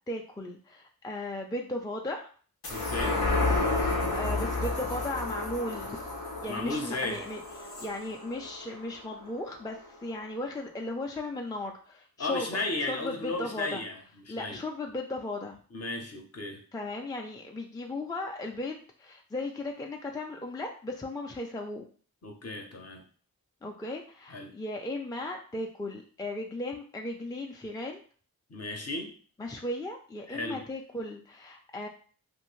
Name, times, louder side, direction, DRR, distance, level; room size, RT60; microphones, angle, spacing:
voice 1, 0.1-2.3 3.9-6.0 6.4-13.8 14.3-15.6 16.7-21.9 23.6-28.0 29.4-31.9, left 2 dB, 10° left, 2 dB, 0.4 m, -36 dB
sound 1, 2.6-9.4 9.8-9.9, left 2 dB, 90° left, 0.9 m, -31 dB
voice 2, 2.7-3.2 6.5-7.2 12.2-14.6 15.7-16.6 22.2-23.0 24.3-24.5 28.5-29.2 30.3-30.7, left 2 dB, 45° left, 3 dB, 0.8 m, -35 dB
2.5 x 2.5 x 3.1 m, 0.43 s
cardioid pair, 45°, 36 cm